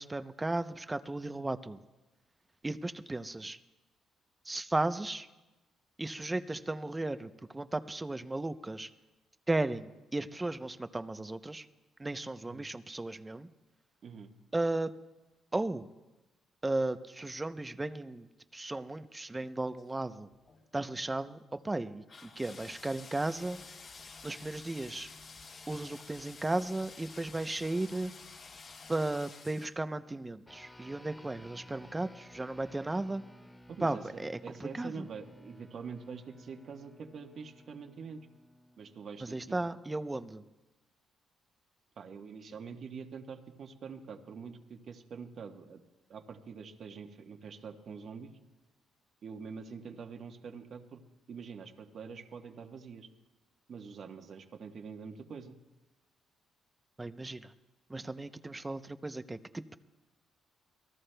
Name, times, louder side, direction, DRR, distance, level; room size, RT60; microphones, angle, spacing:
voice 1, 0.0-1.8 2.6-3.6 4.4-5.3 6.0-8.9 9.5-11.7 12.0-13.5 14.5-14.9 15.5-15.9 16.6-18.3 18.5-20.3 20.7-23.6 24.2-25.1 25.7-28.1 28.9-33.2 33.8-35.1 39.2-40.4 57.0-57.5 57.9-59.8, right 2 dB, 15° right, 11 dB, 0.7 m, -35 dB
sound 1, 19.8-19.9 20.3-20.6 22.1-29.7, left 4 dB, 50° left, 3.4 m, -50 dB
sound 2, 30.5-40.1, equal, 10° left, 1.8 m, -56 dB
voice 2, 33.7-38.2 38.8-39.6 42.0-45.8 46.1-48.3 49.2-51.0 51.3-53.1 53.7-55.6, right 5 dB, 55° right, 5 dB, 1.2 m, -45 dB
27.5 x 19.5 x 2.3 m, 1.1 s
cardioid pair, 90°, 0 cm